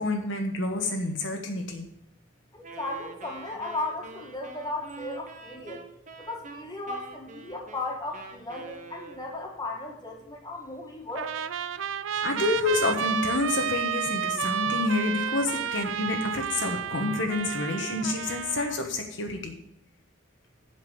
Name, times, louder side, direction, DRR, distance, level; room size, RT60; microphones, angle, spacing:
voice 1, 0.0-1.9 12.1-19.6, left 2 dB, 70° left, 3 dB, 1.3 m, -28 dB
voice 2, 2.5-5.8 6.2-11.3, left 2 dB, 20° left, 0 dB, 2.0 m, -36 dB
Wind instrument woodwind instrument, 2.6-9.6, right 3 dB, 40° right, 1.1 m, -45 dB
Trumpet, 11.1-18.8, right 8 dB, 80° right, 0.5 m, -31 dB
7.8 x 6.0 x 7.8 m, 0.81 s
head